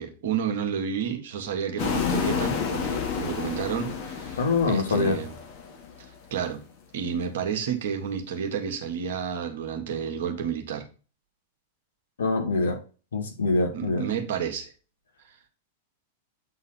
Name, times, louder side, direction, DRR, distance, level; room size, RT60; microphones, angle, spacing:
voice 1, 0.0-4.4 4.7-5.4 6.3-6.6 6.9-10.8 13.7-14.7, right 7 dB, 55° right, 1.5 m, -30 dB
sound 1, 1.8-6.1, left 6 dB, 40° left, 1.5 m, -30 dB
voice 2, 4.4-5.2 12.2-12.8 13.1-14.0, left 3 dB, 65° left, 1.7 m, -24 dB
8.2 x 4.0 x 4.2 m
figure-of-eight pair, 95°, 0 cm